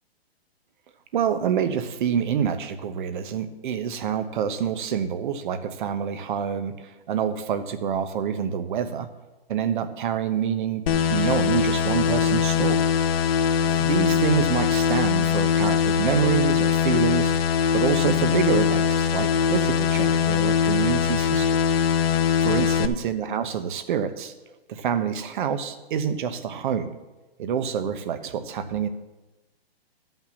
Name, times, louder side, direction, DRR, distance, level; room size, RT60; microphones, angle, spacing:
voice 1, 1.1-9.1 9.5-12.9 13.6-17.3 17.7-21.6 22.4-24.3 24.7-26.9 27.4-28.9, right 8 dB, 50° right, 10 dB, 1.0 m, -27 dB
sound 1, 10.9-22.9, left 7 dB, 70° left, 0.8 m, -22 dB
12.0 x 5.7 x 7.0 m, 1.1 s
hypercardioid pair, 155°, 31 cm